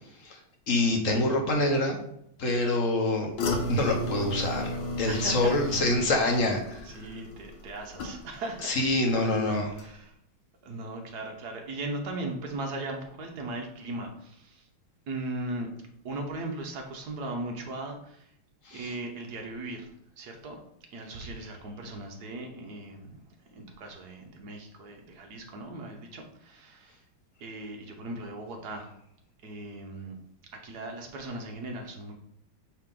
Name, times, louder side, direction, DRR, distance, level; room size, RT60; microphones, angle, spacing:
voice 1, 0.7-2.0 2.4-3.3 3.7-6.8 8.6-9.7 18.7-18.9, left 2 dB, 50° left, 2 dB, 1.1 m, -26 dB
sound 1, 3.4-8.6 8.9-9.4 9.8-9.9, left 1 dB, 70° left, 1.7 m, -34 dB
voice 2, 5.1-6.2 6.7-8.9 9.2-9.3 9.8-10.1 10.6-14.7 15.1-15.7 16.0-18.3 18.7-19.9 20.2-20.6 20.9-23.2 23.5-27.0 27.4-28.9 29.4-30.2 30.5-32.1, right 2 dB, 60° right, 2 dB, 1.3 m, -38 dB
8.7 x 2.9 x 3.8 m, 0.74 s
omnidirectional pair, 2.3 m